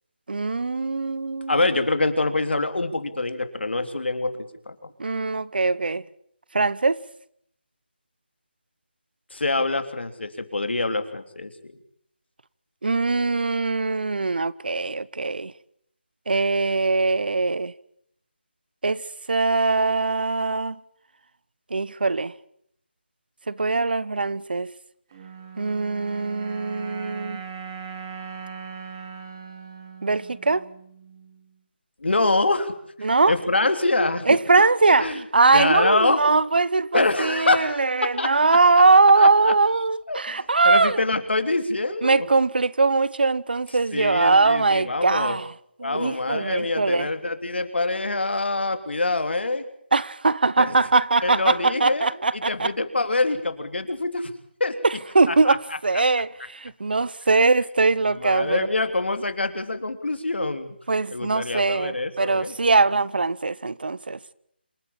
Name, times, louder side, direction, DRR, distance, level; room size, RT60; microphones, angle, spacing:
voice 1, 0.3-1.6 5.0-6.0 6.5-7.0 12.8-15.5 16.3-17.7 18.8-19.0 19.3-20.8 21.7-22.3 23.5-24.7 25.6-27.4 30.0-30.6 33.0-33.3 34.3-41.0 42.0-45.5 45.8-47.1 49.9-52.7 54.8-58.6 60.9-64.2, right 3 dB, 60° right, 0.9 m, -21 dB
voice 2, 1.5-4.7 9.3-11.5 32.0-32.7 33.0-34.4 35.0-35.2 35.5-36.2 36.9-38.3 39.2-39.3 40.1-42.3 43.9-45.4 45.8-49.6 50.6-50.7 51.2-54.3 54.6-54.8 55.3-55.6 58.1-60.7 61.1-62.5, left 2 dB, 80° left, 3.3 m, -25 dB
sound 1, 25.1-31.5, right 6 dB, 20° right, 2.6 m, -40 dB
27.0 x 14.0 x 8.8 m
figure-of-eight pair, 175°, 6 cm